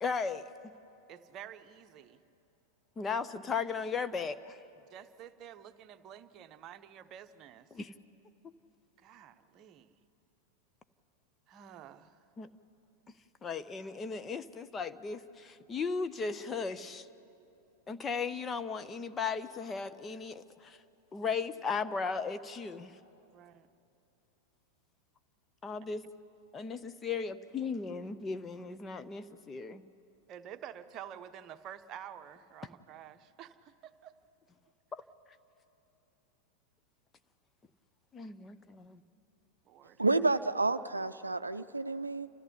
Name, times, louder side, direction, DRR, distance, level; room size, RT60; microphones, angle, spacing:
voice 1, 0.0-0.7 3.0-4.6 7.7-7.9 8.4-8.5 12.4-12.5 13.4-17.1 17.9-20.8 21.1-23.0 25.6-26.0 26.5-29.8 34.9-35.0 38.1-39.0, left 5 dB, 20° left, 11 dB, 0.7 m, -36 dB
voice 2, 1.1-2.2 4.9-7.7 9.0-9.9 11.5-12.2 23.3-23.7 30.3-34.1 39.7-40.0, right 9 dB, 35° right, 9 dB, 0.9 m, -49 dB
voice 3, 40.0-42.3, right 3 dB, 80° right, 11 dB, 0.5 m, -30 dB
30.0 x 14.5 x 9.9 m, 2.8 s
figure-of-eight pair, 90°, 0 cm